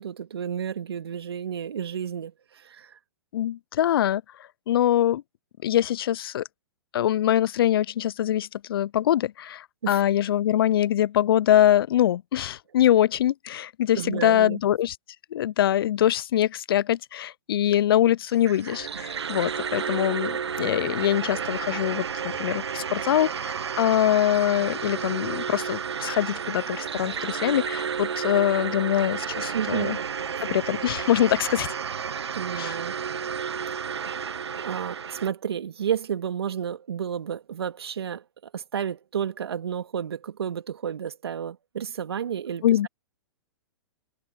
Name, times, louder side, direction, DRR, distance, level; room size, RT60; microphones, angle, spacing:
voice 1, 0.0-3.0 9.8-10.0 13.9-14.6 29.5-30.0 32.3-32.9 34.6-38.2 38.5-42.9, right 8 dB, 70° right, 2.2 m, -31 dB
voice 2, 3.3-4.2 4.7-5.2 5.6-6.5 6.9-15.0 15.3-30.0 30.4-31.7 32.6-32.8 42.6-42.9, left 11 dB, 60° left, 0.6 m, -23 dB
sound 1, 18.3-35.3, right 7 dB, 85° right, 0.4 m, -32 dB
figure-of-eight pair, 115°, 14 cm